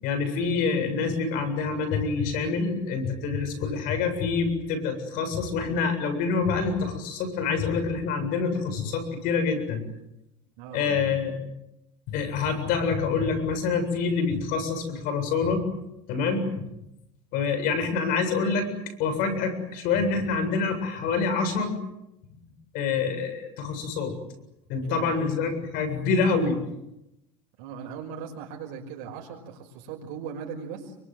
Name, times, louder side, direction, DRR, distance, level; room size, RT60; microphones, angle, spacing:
voice 1, 0.0-9.8 10.7-11.3 12.1-15.6 16.1-16.7 17.3-18.7 19.0-21.8 22.7-24.1 24.7-26.6, left 5 dB, 60° left, 8 dB, 7.5 m, -26 dB
voice 2, 10.6-11.0 24.8-25.2 27.6-31.0, right 7 dB, 65° right, 1 dB, 5.7 m, -38 dB
28.5 x 24.5 x 8.0 m, 0.88 s
supercardioid pair, 140°, 16 cm